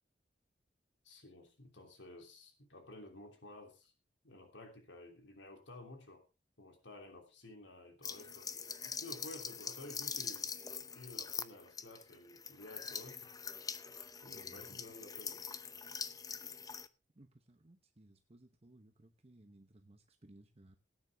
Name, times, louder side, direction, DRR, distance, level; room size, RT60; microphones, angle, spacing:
voice 1, 1.0-3.9 4.2-6.2 6.6-8.5 8.8-10.5 10.9-13.3 14.2-15.4, left 1 dB, 80° left, 4 dB, 3.1 m, -53 dB
sound 1, 8.0-16.9, left 6 dB, 20° left, 0.7 m, -43 dB
voice 2, 14.3-15.0 17.1-20.8, right 1 dB, 35° right, 6 dB, 1.0 m, -61 dB
17.5 x 9.7 x 3.5 m, 0.29 s
head